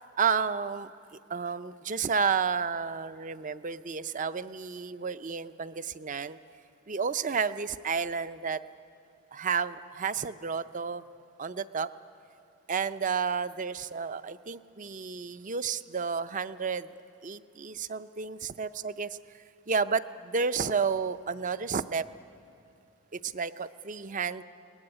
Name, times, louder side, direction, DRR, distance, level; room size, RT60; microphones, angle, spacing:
voice 1, 0.2-0.9 1.3-6.4 6.9-8.6 9.3-11.0 11.4-11.9 12.7-16.9 17.2-19.1 19.7-22.1 23.1-24.4, right 5 dB, 35° right, 13 dB, 0.5 m, -31 dB
22.0 x 19.0 x 9.9 m, 2.5 s
head